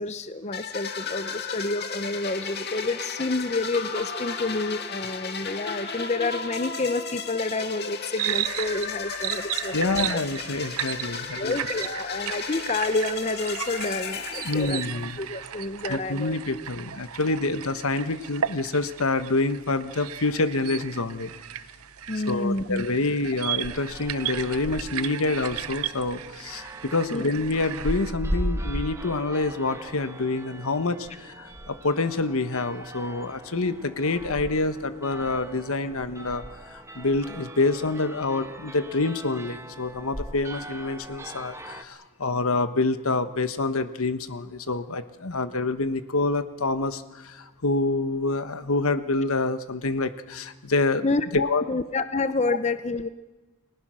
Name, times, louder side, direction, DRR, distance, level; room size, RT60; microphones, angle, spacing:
voice 1, 0.0-10.2 11.4-14.8 15.2-16.4 22.1-22.8 27.1-27.2 44.7-44.8 51.0-51.3 51.7-53.1, left 2 dB, 30° left, 11 dB, 0.7 m, -29 dB
sound 1, 0.5-15.3, left 5 dB, 45° left, 1.8 m, -35 dB
sound 2, 8.2-28.1, right 11 dB, 75° right, 0.7 m, -35 dB
voice 2, 9.7-11.6 14.4-15.2 15.9-21.3 22.3-51.1 51.3-51.6 52.5-52.6, left 3 dB, 75° left, 11 dB, 1.2 m, -27 dB
sound 3, 23.6-41.8, right 1 dB, 10° right, 1.1 m, -38 dB
30.0 x 20.5 x 6.3 m, 1.1 s
head